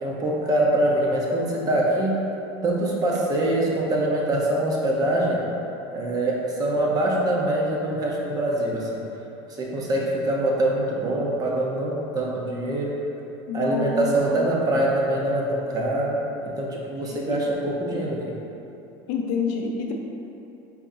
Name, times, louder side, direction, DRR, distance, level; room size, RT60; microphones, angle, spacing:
voice 1, 0.0-2.2 2.6-5.4 5.9-9.0 9.6-13.0 13.5-18.4, right 1 dB, 30° right, -3 dB, 0.8 m, -24 dB
voice 2, 13.5-14.5 17.3-17.4 19.1-19.9, left 5 dB, 65° left, 1 dB, 0.6 m, -28 dB
4.6 x 4.2 x 2.6 m, 2.9 s
supercardioid pair, 130°, 13 cm